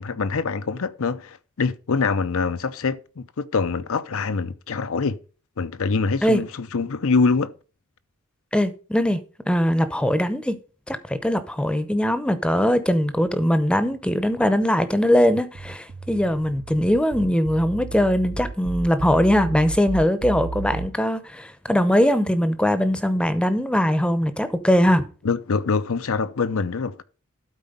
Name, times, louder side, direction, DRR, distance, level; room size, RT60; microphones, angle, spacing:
voice 1, 0.0-5.2 5.6-7.5 25.2-27.0, left 4 dB, 65° left, 0.6 m, -24 dB
voice 2, 8.5-9.2 9.5-10.6 10.9-25.0, equal, 5° left, 0.8 m, -21 dB
sound 1, 15.5-20.9, right 3 dB, 35° right, 0.4 m, -33 dB
12.5 x 4.4 x 5.5 m
head